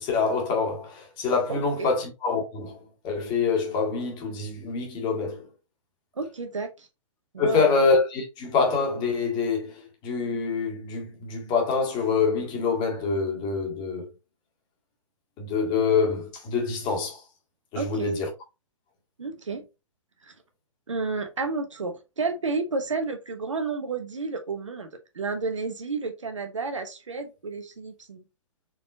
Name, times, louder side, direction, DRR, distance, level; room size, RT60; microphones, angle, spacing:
voice 1, 0.0-2.8 3.0-5.4 7.4-14.1 15.4-17.2 17.7-18.3, left 4 dB, 25° left, 1.8 m, -25 dB
voice 2, 1.5-1.9 6.2-6.9 7.3-7.7 17.7-18.1 19.2-19.6 20.9-24.9 25.1-28.2, right 4 dB, 70° right, 1.1 m, -31 dB
4.7 x 4.1 x 2.8 m
figure-of-eight pair, 115°, 17 cm